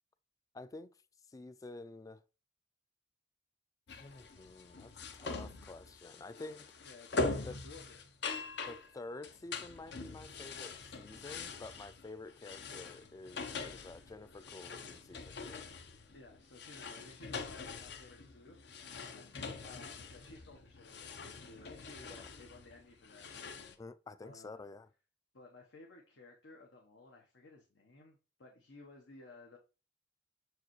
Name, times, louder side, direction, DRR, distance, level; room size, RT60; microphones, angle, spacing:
voice 1, 0.5-0.9 1.3-2.2 4.0-6.7 7.4-7.6 8.7-15.7 22.1-22.3 23.8-24.9, left 2 dB, 20° left, 0.3 m, -49 dB
sound 1, 3.9-23.8, left 3 dB, 65° left, 0.7 m, -43 dB
voice 2, 6.8-8.1 16.1-18.6 19.0-19.3 19.6-23.7 24.2-24.6 25.3-29.6, left 2 dB, 85° left, 1.0 m, -56 dB
6.6 x 4.7 x 3.0 m
head